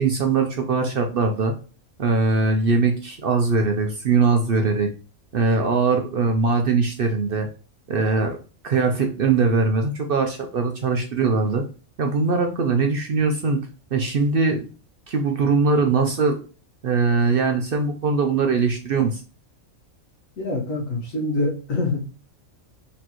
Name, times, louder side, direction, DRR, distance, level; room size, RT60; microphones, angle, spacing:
voice 1, 0.0-1.5 2.0-4.9 5.3-7.5 7.9-8.4 8.6-11.6 12.0-13.6 13.9-14.7 15.1-16.4 16.8-19.2, right 4 dB, 60° right, 4 dB, 0.6 m, -21 dB
voice 2, 20.4-22.0, left 2 dB, 70° left, -1 dB, 1.7 m, -25 dB
4.3 x 3.2 x 2.9 m, 0.35 s
omnidirectional pair, 1.4 m